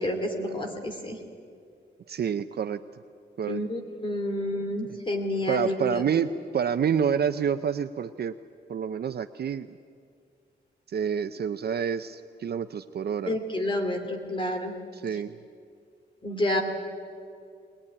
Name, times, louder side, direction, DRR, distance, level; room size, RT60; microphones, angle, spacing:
voice 1, 0.0-1.2 3.5-6.0 13.3-14.7 16.2-16.6, left 1 dB, 25° left, 4 dB, 2.7 m, -29 dB
voice 2, 2.1-2.8 3.4-3.6 4.9-5.0 5.5-8.3 8.7-9.8 10.9-13.4 14.9-15.3, right 7 dB, 60° right, 9 dB, 0.6 m, -28 dB
21.0 x 20.5 x 9.8 m, 2.3 s
wide cardioid pair, 150°, 19 cm